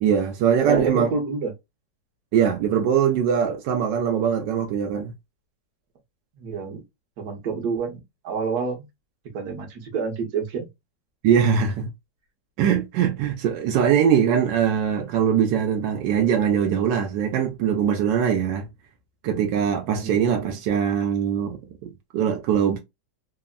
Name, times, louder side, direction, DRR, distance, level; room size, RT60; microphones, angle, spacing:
voice 1, 0.0-1.1 2.3-5.1 11.2-11.9 12.6-18.7 19.2-22.8, right 8 dB, 85° right, 1.3 m, -22 dB
voice 2, 0.6-1.5 6.4-6.8 7.2-8.9 9.3-10.7 19.9-20.2, right 5 dB, 65° right, 1.4 m, -28 dB
3.5 x 2.0 x 2.2 m
omnidirectional pair, 1.8 m